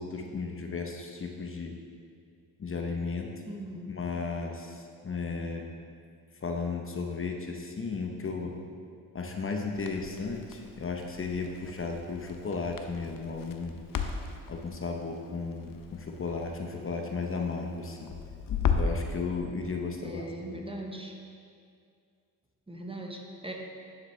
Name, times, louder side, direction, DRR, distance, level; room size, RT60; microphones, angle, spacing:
voice 1, 0.0-1.7 2.6-3.3 3.9-5.7 6.4-8.5 9.1-13.8 14.5-18.1 18.8-20.6, left 4 dB, 35° left, 2 dB, 0.9 m, -34 dB
voice 2, 3.5-3.8 20.0-21.1 22.7-23.5, right 1 dB, 15° right, 1 dB, 0.9 m, -40 dB
Crackle, 9.7-19.1, left 6 dB, 65° left, 0.7 m, -36 dB
9.7 x 7.2 x 3.2 m, 2.3 s
cardioid pair, 80°, 37 cm